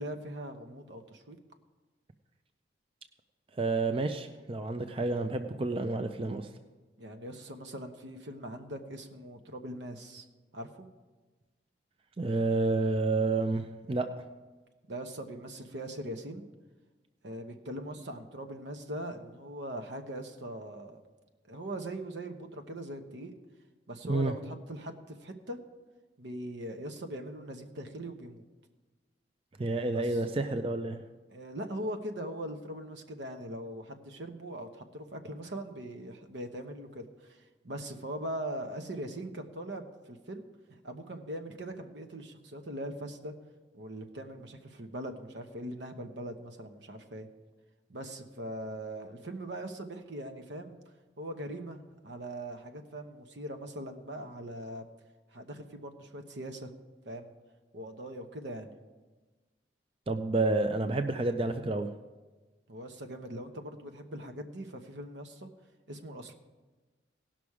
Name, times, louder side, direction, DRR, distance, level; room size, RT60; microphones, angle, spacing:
voice 1, 0.0-1.4 7.0-10.3 10.5-10.9 14.9-16.5 17.2-21.0 21.5-23.4 23.9-25.6 26.2-28.4 29.9-30.2 31.3-40.5 40.8-43.3 43.7-47.3 47.9-50.7 51.2-54.9 55.3-56.7 57.0-57.3 57.7-58.7 62.7-65.5 65.9-66.3, right 1 dB, 75° right, 6 dB, 1.0 m, -41 dB
voice 2, 3.6-6.5 12.2-14.1 24.0-24.3 29.6-31.0 60.1-61.9, right 3 dB, 30° right, 7 dB, 0.4 m, -29 dB
18.0 x 6.0 x 4.8 m, 1.3 s
head